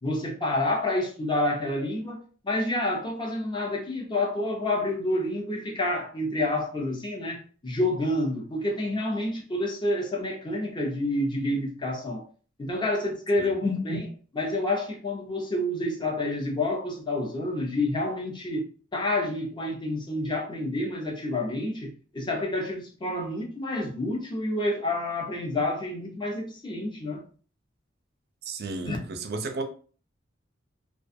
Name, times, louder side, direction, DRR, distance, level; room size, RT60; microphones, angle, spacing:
voice 1, 0.0-2.2 2.4-12.2 12.6-27.2 28.8-29.0, left 1 dB, 25° left, 0.6 m, -28 dB
voice 2, 28.4-29.6, right 3 dB, 55° right, 0.5 m, -33 dB
2.5 x 2.2 x 2.6 m
head